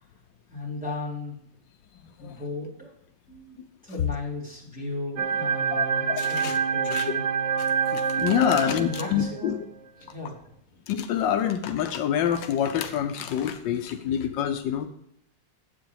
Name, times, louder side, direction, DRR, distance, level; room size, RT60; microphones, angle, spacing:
voice 1, 0.5-1.4 2.2-2.9 3.3-3.6 3.8-7.2 8.5-9.6 10.1-10.3, left 3 dB, 5° right, -8 dB, 3.9 m, -36 dB
voice 2, 2.0-2.3 5.7-6.6 6.9-7.1 7.6-9.6 10.9-14.9, left 9 dB, 80° left, 7 dB, 1.4 m, -27 dB
sound 1, 5.2-9.6, right 6 dB, 65° right, 0.7 m, -27 dB
9.2 x 8.0 x 4.8 m, 0.76 s
omnidirectional pair, 2.0 m